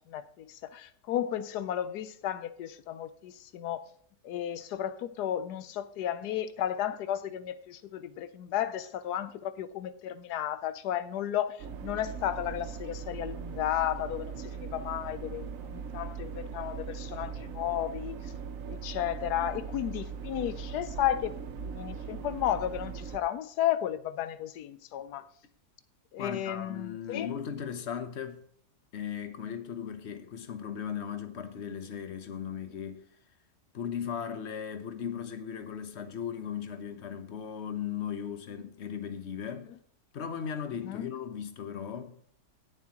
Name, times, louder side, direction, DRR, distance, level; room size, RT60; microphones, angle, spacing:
voice 1, 0.0-3.9 4.2-18.4 18.7-21.4 21.6-25.3 26.1-27.4 40.8-41.1, left 11 dB, 85° left, 1.2 m, -33 dB
sound 1, 11.6-23.2, right 6 dB, 60° right, 1.1 m, -40 dB
voice 2, 26.2-28.4 28.9-33.0 33.7-39.7 40.1-42.2, left 8 dB, 50° left, 1.0 m, -37 dB
16.0 x 7.3 x 3.0 m
omnidirectional pair, 1.7 m